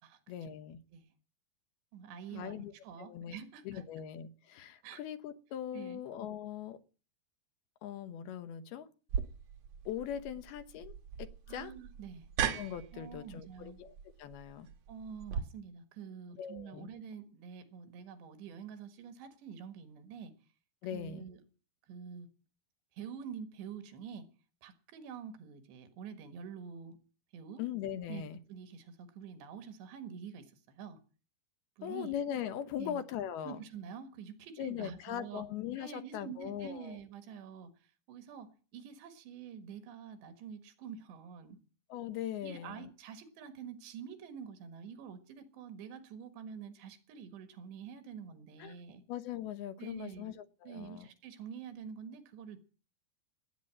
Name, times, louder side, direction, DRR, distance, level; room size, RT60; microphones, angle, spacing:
voice 1, 0.3-0.8 2.3-2.7 3.0-3.4 3.7-6.8 7.8-8.9 9.9-11.7 12.5-13.9 14.2-14.7 16.4-16.9 20.8-21.3 27.6-28.4 31.8-33.6 34.6-37.0 41.9-42.9 48.6-48.8 49.1-51.1, left 10 dB, 75° left, 2.8 m, -40 dB
voice 2, 1.9-3.8 4.8-5.0 5.7-6.0 11.5-12.3 12.9-13.8 14.9-20.3 20.9-21.4 21.9-22.3 23.0-24.3 24.6-27.0 27.3-27.6 28.1-28.2 28.5-31.0 31.8-32.2 32.8-33.0 33.4-35.5 35.8-41.6 42.4-49.0 49.8-50.4 50.7-52.6, right 7 dB, 90° right, 3.9 m, -47 dB
sound 1, 9.1-15.4, right 8 dB, 70° right, 1.6 m, -39 dB
18.0 x 9.1 x 7.5 m
omnidirectional pair, 4.8 m